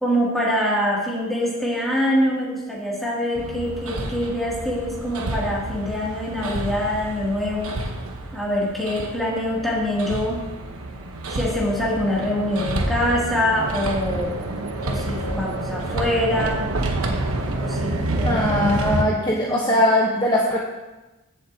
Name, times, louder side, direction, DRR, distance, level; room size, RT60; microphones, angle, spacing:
voice 1, 0.0-7.7 8.3-10.5 11.3-14.4 14.8-16.7 17.6-18.4 19.3-19.7, left 1 dB, ahead, -6 dB, 2.6 m, -24 dB
Hammer, 3.3-19.0, right 2 dB, 85° right, 1.1 m, -28 dB
voice 2, 18.2-20.6, left 1 dB, 20° left, -3 dB, 1.0 m, -20 dB
14.0 x 7.5 x 2.8 m, 1.1 s
head